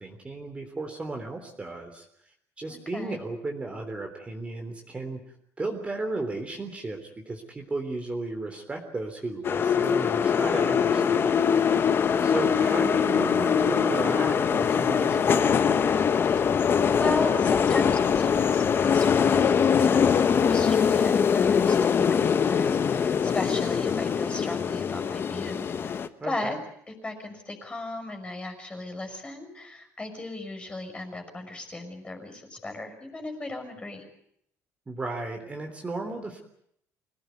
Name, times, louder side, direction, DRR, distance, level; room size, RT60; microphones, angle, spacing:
voice 1, 0.0-2.1 2.6-5.2 5.6-11.6 12.2-15.9 26.2-26.6 34.9-36.4, right 2 dB, 20° right, 3 dB, 3.6 m, -34 dB
voice 2, 2.7-3.2 12.5-13.1 17.0-26.6 26.9-34.0, left 2 dB, 20° left, 5 dB, 6.1 m, -36 dB
sound 1, 9.4-26.1, left 7 dB, 35° left, 1.3 m, -23 dB
26.0 x 18.0 x 9.5 m, 0.72 s
cardioid pair, 130°, 6 cm